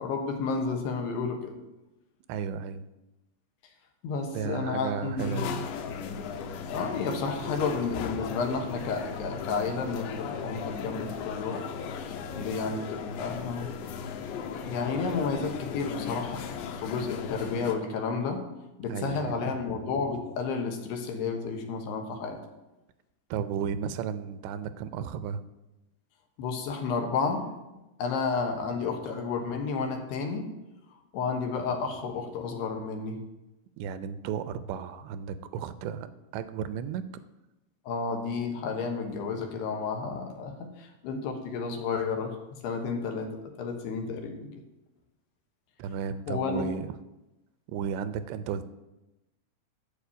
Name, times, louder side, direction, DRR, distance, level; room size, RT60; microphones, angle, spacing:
voice 1, 0.0-1.6 4.0-5.6 6.7-11.6 11.9-13.7 14.7-18.5 18.8-22.4 26.4-27.5 28.0-30.5 31.1-33.2 37.9-42.4 42.6-44.5 46.3-46.7, left 4 dB, 75° left, 4 dB, 3.2 m, -31 dB
voice 2, 2.3-2.9 4.3-5.7 18.9-19.6 23.3-25.4 33.8-37.1 45.8-47.0 47.7-48.6, right 7 dB, 85° right, 13 dB, 2.9 m, -34 dB
sound 1, 5.2-17.8, left 6 dB, 90° left, 3.2 m, -37 dB
11.5 x 5.1 x 8.3 m, 0.99 s
omnidirectional pair, 5.1 m